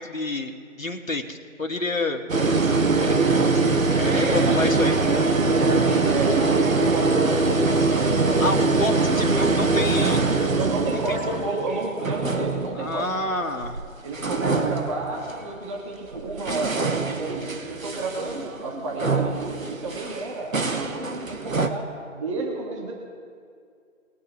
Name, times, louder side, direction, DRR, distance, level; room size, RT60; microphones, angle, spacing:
voice 1, 0.0-2.2 3.0-3.4 3.9-5.0 8.4-10.3 11.1-11.2 12.8-13.8, left 2 dB, 80° left, 4 dB, 1.9 m, -29 dB
sound 1, 2.3-13.8 14.1-15.5 16.1-21.7, right 3 dB, 80° right, 1.3 m, -23 dB
voice 2, 5.4-8.5 10.5-13.1 14.0-16.8 17.1-21.9 22.1-22.9, right 3 dB, 25° right, -1 dB, 1.7 m, -31 dB
21.5 x 8.9 x 3.1 m, 2.3 s
figure-of-eight pair, 150°, 40 cm